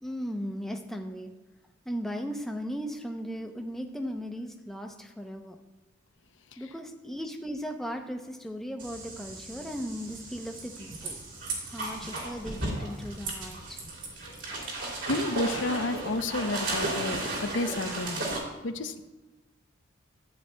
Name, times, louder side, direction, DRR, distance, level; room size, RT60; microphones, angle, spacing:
voice 1, 0.0-1.3 1.9-5.6 6.6-11.2 11.7-13.8, equal, ahead, 3 dB, 0.6 m, -37 dB
sound 1, 8.8-18.4, right 2 dB, 70° right, 2.9 m, -35 dB
voice 2, 14.6-18.3 18.6-19.0, left 2 dB, 75° left, 9 dB, 0.6 m, -31 dB
14.0 x 9.3 x 2.2 m, 1.2 s
head